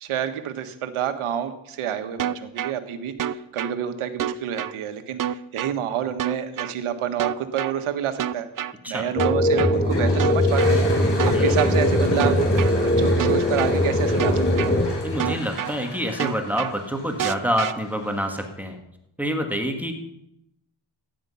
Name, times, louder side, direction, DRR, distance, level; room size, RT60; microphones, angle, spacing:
voice 1, 0.0-8.5 8.9-10.8 11.2-14.7, right 9 dB, 80° right, 9 dB, 1.6 m, -28 dB
sound 1, 2.2-2.7 3.2-3.7 4.2-4.7 5.2-5.7 6.2-6.7 7.2-7.7 8.2-8.7 9.2-9.7 10.2-10.7 11.2-11.7 12.2-12.7 13.2-13.7 14.2-14.7 15.2-15.7 16.2-16.7 17.2-17.7, right 10 dB, 40° right, 0.6 m, -27 dB
sound 2, 9.2-15.4, left 1 dB, 15° left, 1.3 m, -21 dB
Toilet flush, 9.7-18.5, left 2 dB, 55° left, 5.1 m, -38 dB
voice 2, 11.3-11.7 15.0-18.8 19.2-19.9, equal, 5° right, 4 dB, 2.0 m, -27 dB
15.0 x 10.0 x 5.7 m, 0.82 s
cardioid pair, 85°, 49 cm